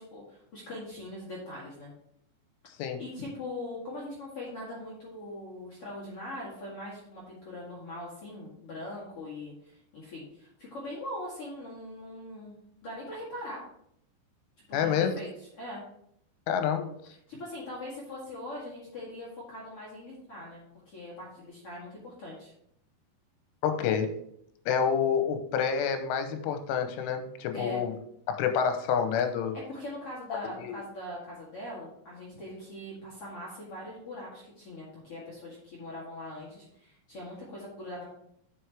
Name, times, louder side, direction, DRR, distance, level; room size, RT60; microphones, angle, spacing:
voice 1, 0.0-1.9 3.0-12.5 12.8-13.6 14.7-15.3 15.5-15.8 17.3-22.5 27.5-27.8 29.5-38.0, left 1 dB, 55° left, -6 dB, 1.7 m, -41 dB
voice 2, 14.7-15.1 16.5-16.9 23.6-24.1 24.7-28.0 28.3-29.6 30.6-30.8, left 7 dB, 85° left, 8 dB, 3.3 m, -28 dB
9.4 x 6.1 x 3.3 m, 0.71 s
omnidirectional pair, 5.5 m